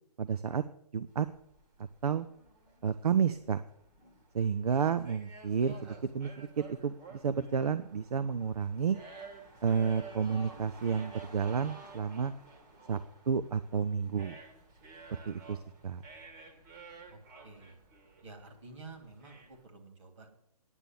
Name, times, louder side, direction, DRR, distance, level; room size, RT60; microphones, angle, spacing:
voice 1, 0.2-0.6 0.9-1.3 2.0-2.3 2.8-3.6 4.3-9.0 9.6-12.3 12.9-13.0 13.3-14.4 15.3-16.0, right 6 dB, 70° right, 13 dB, 0.7 m, -31 dB
sound 1, 1.1-19.6, right 3 dB, 30° right, 1.9 m, -52 dB
voice 2, 5.6-6.0 17.1-17.7 18.2-20.4, right 3 dB, 50° right, 4 dB, 2.9 m, -51 dB
10.0 x 6.9 x 9.1 m, 0.67 s
hypercardioid pair, 150°, 20 cm